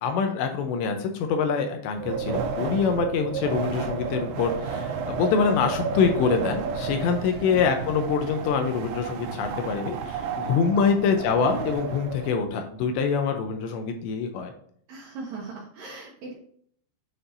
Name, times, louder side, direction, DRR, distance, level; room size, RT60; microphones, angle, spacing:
voice 1, 0.0-14.5, left 5 dB, 80° left, 5 dB, 2.8 m, -25 dB
Wind, 2.0-12.3, right 5 dB, 90° right, 2.2 m, -32 dB
voice 2, 7.2-7.7 10.7-10.9 14.9-16.3, right 3 dB, 75° right, -2 dB, 2.2 m, -39 dB
9.9 x 4.5 x 2.6 m, 0.63 s
omnidirectional pair, 5.3 m